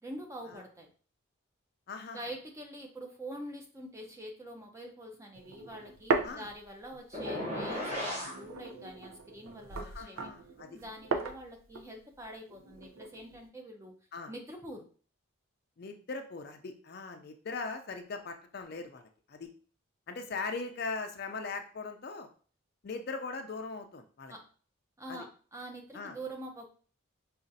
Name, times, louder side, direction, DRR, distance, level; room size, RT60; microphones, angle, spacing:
voice 1, 0.0-0.9 2.0-10.3 10.7-13.9 14.3-14.9 24.3-24.4 25.0-26.7, right 1 dB, 15° right, 2 dB, 0.5 m, -45 dB
voice 2, 1.9-2.2 6.2-6.5 9.8-10.8 14.1-14.3 15.8-19.5 20.1-22.3 22.8-24.3 25.1-25.3 25.9-26.2, left 4 dB, 50° left, 6 dB, 0.4 m, -40 dB
sound 1, 5.3-7.2 7.5-13.5, right 4 dB, 75° right, 0.5 m, -37 dB
sound 2, 7.1-8.4, left 1 dB, 30° right, 1.0 m, -35 dB
5.0 x 2.4 x 2.6 m, 0.41 s
head